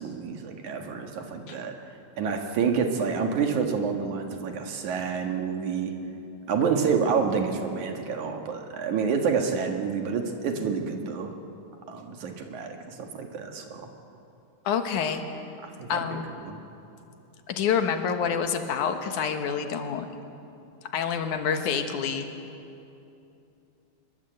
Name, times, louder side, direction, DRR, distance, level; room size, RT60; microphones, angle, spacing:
voice 1, 0.0-1.8 2.2-5.9 6.5-11.3 11.9-13.8 15.6-16.0 16.4-16.6, right 6 dB, 75° right, 4 dB, 3.2 m, -28 dB
voice 2, 14.7-15.2 15.9-16.3 17.5-20.1 20.9-22.3, left 7 dB, 80° left, 6 dB, 2.9 m, -27 dB
24.5 x 22.0 x 8.0 m, 2.8 s
omnidirectional pair, 3.4 m